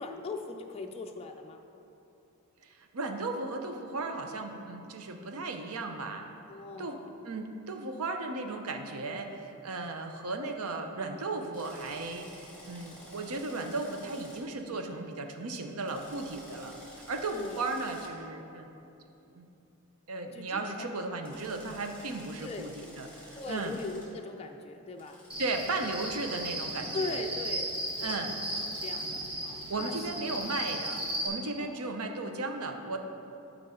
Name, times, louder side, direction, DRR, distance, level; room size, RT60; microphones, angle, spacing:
voice 1, 0.0-1.6 6.5-7.1 17.3-17.6 20.3-21.4 22.4-22.7 23.3-25.2 26.9-28.4 28.7-30.0 31.6-31.9, left 3 dB, 25° left, 3 dB, 0.3 m, -40 dB
voice 2, 2.6-6.3 6.8-7.0 7.2-18.7 19.3-19.5 20.1-23.8 25.4-27.2 28.0-28.4 29.7-33.0, right 3 dB, 70° right, 5 dB, 0.7 m, -36 dB
Drill, 11.5-14.4 15.8-18.1 21.2-24.0 25.0-28.1, left 1 dB, 5° left, 1.6 m, -53 dB
Cricket, 25.3-31.3, right 1 dB, 25° right, 1.3 m, -36 dB
12.0 x 4.8 x 3.7 m, 2.8 s
head